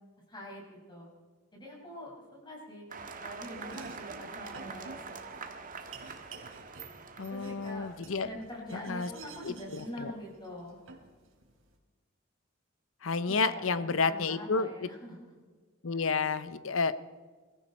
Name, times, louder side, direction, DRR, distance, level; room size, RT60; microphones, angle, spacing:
voice 1, 0.3-0.6 0.9-1.1 1.5-2.9 3.2-5.0 5.3-5.6 7.1-7.9 8.2-10.8 13.1-15.3 15.9-16.0, left 1 dB, 20° left, -2 dB, 5.7 m, -44 dB
sound 1, 2.9-8.0, right 4 dB, 45° right, 1.6 m, -44 dB
Domestic sounds home sounds, 3.6-11.7, right 4 dB, 80° right, 3.6 m, -51 dB
voice 2, 7.2-8.3 8.7-9.1 9.4-10.1 13.0-14.9 15.8-16.9, left 4 dB, 80° left, 14 dB, 0.8 m, -31 dB
23.0 x 14.5 x 4.3 m, 1.4 s
head